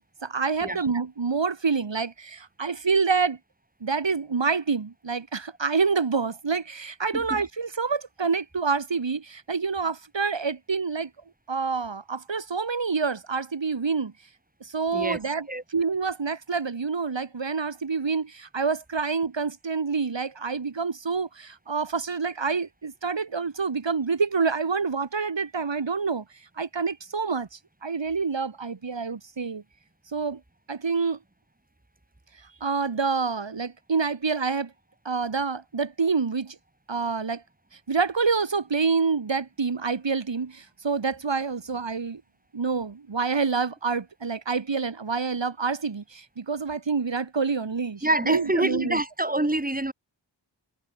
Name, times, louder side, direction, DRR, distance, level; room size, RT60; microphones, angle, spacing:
voice 1, 0.0-3.4 3.8-11.1 11.5-14.1 14.6-15.5 15.7-26.2 26.6-29.6 30.1-30.4 30.7-31.2 32.6-34.7 35.0-36.6 36.9-37.4 37.9-42.2 42.5-49.0, right 5 dB, 75° right, 2.2 m, -27 dB
voice 2, 48.0-49.9, right 1 dB, 20° right, 2.6 m, -26 dB
wide cardioid pair, 50°, 44 cm